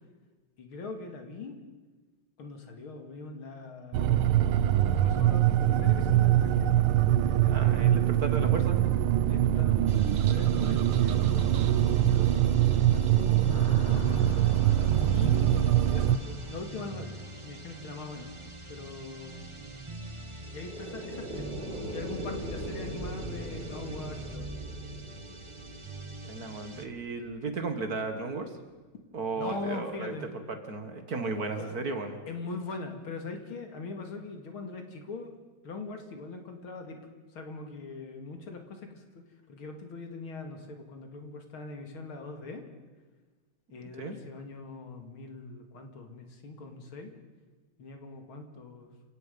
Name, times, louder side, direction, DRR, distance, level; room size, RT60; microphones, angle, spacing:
voice 1, 0.6-1.6 2.4-4.2 4.8-6.9 7.3-8.2 9.2-14.1 15.1-17.1 17.4-18.3 18.7-19.4 20.5-21.6 21.9-24.6 29.3-30.3 31.6-31.7 32.3-35.3 35.6-37.0 37.3-39.2 39.5-42.6 43.7-47.1 47.8-48.9, left 3 dB, 75° left, 4 dB, 3.1 m, -41 dB
sound 1, 3.9-16.2, right 12 dB, 80° right, 1.6 m, -23 dB
voice 2, 7.5-8.8 26.2-28.5 29.1-30.1 30.5-32.2 44.0-44.2, right 3 dB, 45° right, 7 dB, 2.0 m, -34 dB
sound 2, 9.9-26.9, right 2 dB, 20° right, 0.8 m, -43 dB
sound 3, 13.5-17.4 20.4-27.6, right 1 dB, 20° left, 8.3 m, -42 dB
29.0 x 17.0 x 5.4 m, 1.3 s
omnidirectional pair, 2.3 m